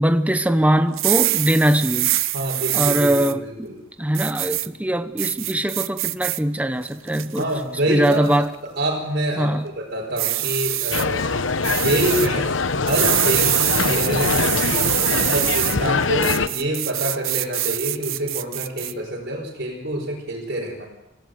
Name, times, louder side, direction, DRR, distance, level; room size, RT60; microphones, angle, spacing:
voice 1, 0.0-2.1 2.7-3.7 4.0-7.5 7.9-8.5 9.4-9.6, right 1 dB, 5° right, 9 dB, 0.9 m, -21 dB
sound 1, 0.9-3.3 4.1-4.7 5.2-6.4 6.9-7.4 8.0-8.3 10.2-11.0 11.6-12.3 12.9-15.8 16.2-18.9, right 16 dB, 75° right, 0.8 m, -24 dB
voice 2, 2.3-3.8 7.4-11.3 11.8-12.5 12.8-20.9, right 1 dB, 50° right, -5 dB, 5.0 m, -26 dB
sound 2, 10.9-16.5, left 4 dB, 65° left, 1.0 m, -23 dB
25.5 x 17.0 x 7.9 m, 0.93 s
head